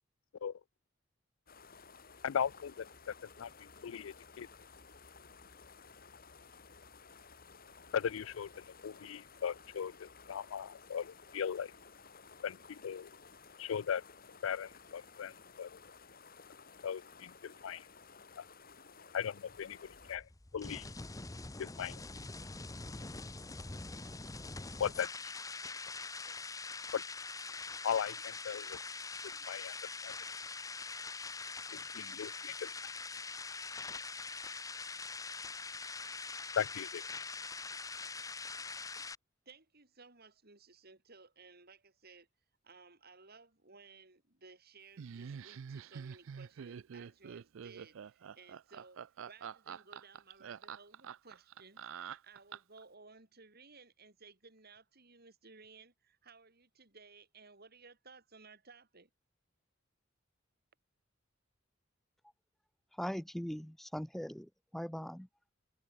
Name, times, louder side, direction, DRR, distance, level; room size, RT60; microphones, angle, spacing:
sound 1, 1.5-20.2, left 5 dB, 50° left, 4.0 m, -56 dB
voice 1, 2.2-3.1 3.4-4.5 7.9-11.7 12.4-13.1 13.6-14.0 14.4-15.8 16.8-17.8 18.4-18.5 19.1-20.3 20.5-20.9 21.6-22.0 24.8-25.3 26.9-27.0 27.8-28.8 29.2-29.8 30.0-30.1 31.7-32.9 36.6-37.1, left 8 dB, 80° left, 0.4 m, -38 dB
sound 2, 19.5-39.2, left 4 dB, 15° left, 0.9 m, -44 dB
voice 2, 39.5-42.3 42.6-59.1, right 4 dB, 55° right, 5.5 m, -58 dB
Laughter, 45.0-52.8, right 7 dB, 75° right, 0.4 m, -46 dB
voice 3, 63.0-64.5 64.7-65.3, equal, ahead, 0.3 m, -40 dB
head